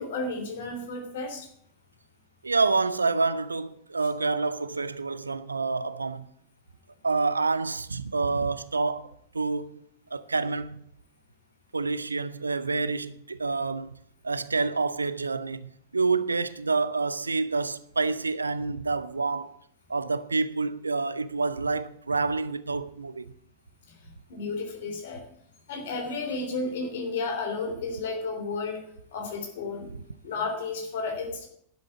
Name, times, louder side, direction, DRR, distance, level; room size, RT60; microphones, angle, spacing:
voice 1, 0.0-1.5 24.3-25.2 25.7-28.9 29.1-29.9 30.2-31.5, left 3 dB, 55° left, 3.3 m, -32 dB
voice 2, 2.4-6.3 7.0-9.8 10.1-10.8 11.7-13.9 14.2-19.6 19.9-23.3, right 4 dB, 80° right, 0.6 m, -28 dB
11.5 x 7.8 x 8.2 m
figure-of-eight pair, 90°, 0 cm